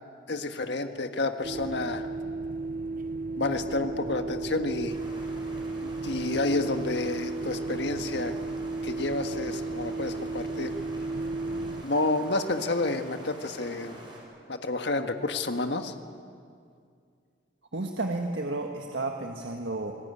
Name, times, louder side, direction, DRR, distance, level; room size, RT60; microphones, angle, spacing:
voice 1, 0.3-2.1 3.4-5.0 5.8-8.3 8.8-10.7 11.8-14.0 14.5-15.9, left 2 dB, 65° left, 7 dB, 1.6 m, -30 dB
sound 1, 1.4-11.8, right 3 dB, 45° right, 0.6 m, -34 dB
sound 2, 4.9-14.2, right 1 dB, 25° right, 6.2 m, -46 dB
voice 2, 17.7-19.9, right 2 dB, 75° right, 2 dB, 1.6 m, -32 dB
26.0 x 20.0 x 9.8 m, 2.3 s
head